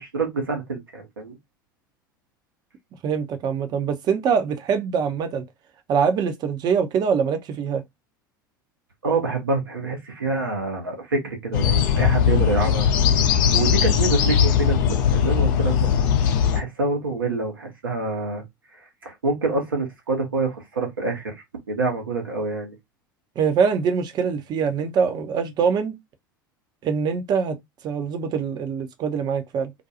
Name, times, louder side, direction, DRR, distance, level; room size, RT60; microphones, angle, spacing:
voice 1, 0.0-1.4 9.0-12.9 13.5-15.9 16.5-18.4 19.0-21.3 21.7-22.8, right 3 dB, 80° right, 0.9 m, -26 dB
voice 2, 3.0-5.4 5.9-7.8 23.4-25.9 26.8-27.6 27.8-29.7, right 6 dB, 40° right, 0.6 m, -23 dB
sound 1, 11.5-16.6, left 8 dB, 60° left, 0.5 m, -19 dB
2.5 x 2.3 x 2.7 m
figure-of-eight pair, 75°, 11 cm